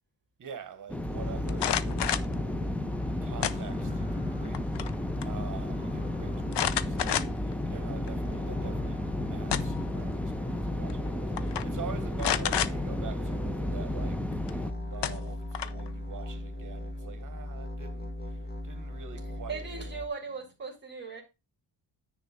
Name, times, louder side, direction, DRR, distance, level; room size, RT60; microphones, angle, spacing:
voice 1, 0.4-2.2 3.2-4.8 5.2-14.2 14.5-18.1 18.6-19.8, right 7 dB, 45° right, 1.3 m, -46 dB
sound 1, 0.9-14.7, left 1 dB, 5° left, 0.5 m, -33 dB
sound 2, 1.0-20.1, left 1 dB, 20° left, 1.3 m, -38 dB
sound 3, 1.5-2.3 3.4-4.0 4.4-4.9 5.2-5.3 6.5-7.5 8.1-8.2 9.2-9.9 10.9-11.1 11.4-11.6 12.2-12.7 14.5-14.6 15.0-15.9, left 10 dB, 75° left, 0.8 m, -30 dB
voice 2, 19.2-21.2, right 5 dB, 25° right, 2.3 m, -39 dB
9.9 x 3.7 x 6.5 m
wide cardioid pair, 165°, 41 cm